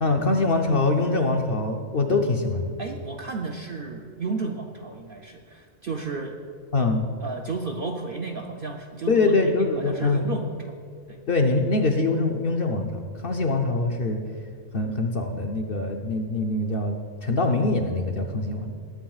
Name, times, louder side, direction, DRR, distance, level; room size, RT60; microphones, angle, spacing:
voice 1, 0.0-2.8 6.7-7.0 9.1-10.3 11.3-14.2 14.7-17.0 17.2-18.7, left 3 dB, 50° left, 3 dB, 0.8 m, -23 dB
voice 2, 2.8-6.4 7.2-9.3 9.8-10.6 11.1-11.2, right 4 dB, 55° right, 2 dB, 0.6 m, -33 dB
19.5 x 9.0 x 2.4 m, 2.1 s
omnidirectional pair, 1.5 m